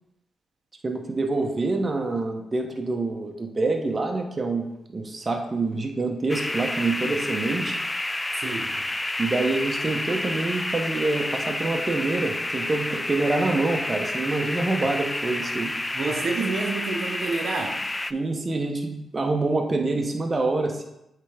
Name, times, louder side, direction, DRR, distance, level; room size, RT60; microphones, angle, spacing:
voice 1, 0.8-7.8 9.2-15.7 18.1-20.8, right 3 dB, 35° right, 3 dB, 0.9 m, -26 dB
sound 1, 6.3-18.1, left 1 dB, 20° left, 0.3 m, -30 dB
voice 2, 8.4-8.8 15.9-17.9, right 4 dB, 60° right, 2 dB, 0.9 m, -29 dB
8.2 x 3.4 x 3.4 m, 0.86 s
supercardioid pair, 50°, 0 cm